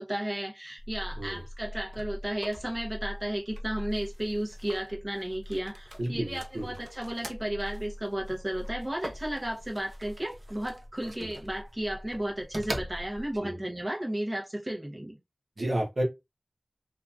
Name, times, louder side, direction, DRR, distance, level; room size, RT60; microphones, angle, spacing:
voice 1, 0.0-15.1, right 1 dB, 25° right, 0.9 m, -33 dB
sound 1, 0.8-13.4, equal, 50° right, 0.7 m, -41 dB
voice 2, 6.0-6.7 11.2-11.3 13.4-13.6 15.6-16.0, right 1 dB, 70° right, 1.0 m, -31 dB
2.8 x 2.5 x 2.3 m
wide cardioid pair, 50°, 0 cm